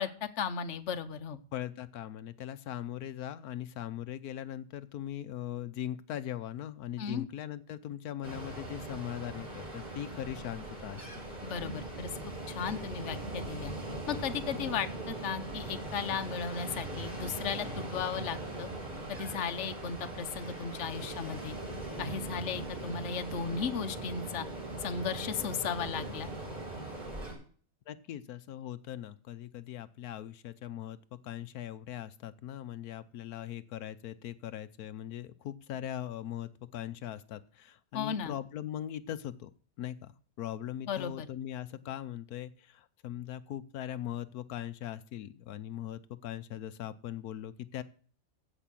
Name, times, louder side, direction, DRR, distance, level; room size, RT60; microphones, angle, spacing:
voice 1, 0.0-1.4 7.0-7.3 11.4-12.1 12.5-13.7 14.1-18.7 19.1-21.6 22.0-24.5 24.8-26.3 37.9-38.4 40.9-41.3, left 6 dB, 55° left, 9 dB, 1.2 m, -35 dB
voice 2, 1.5-11.2 27.9-39.5 39.8-40.1 40.4-47.8, left 11 dB, 90° left, 12 dB, 1.3 m, -40 dB
Ocean, 8.2-27.3, right 2 dB, 30° right, 7.4 m, -40 dB
15.5 x 5.5 x 7.5 m, 0.43 s
omnidirectional pair, 1.5 m